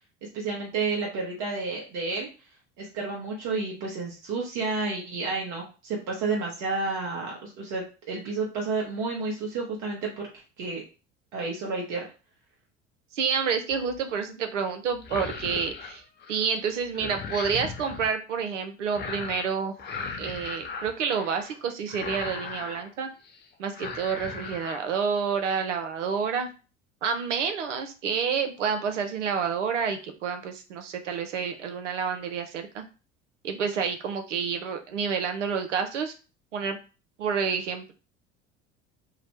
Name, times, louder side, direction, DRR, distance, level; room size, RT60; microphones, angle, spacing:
voice 1, 0.3-2.3 2.8-10.3 10.6-10.8 11.3-12.1, right 3 dB, 55° right, -2 dB, 1.0 m, -31 dB
voice 2, 13.1-16.0 16.3-19.8 20.2-23.1 23.6-26.5 27.0-32.8 33.4-36.1 36.5-36.8 37.2-37.9, right 6 dB, 85° right, 6 dB, 0.6 m, -29 dB
sound 1, 13.7-14.1 14.9-16.5 16.8-18.1 18.9-19.5 19.8-21.6 21.9-22.9 23.2-23.4 23.7-24.8 25.2-25.6, left 5 dB, 30° left, 0.5 m, -38 dB
2.8 x 2.1 x 2.9 m, 0.33 s
hypercardioid pair, 70°, 36 cm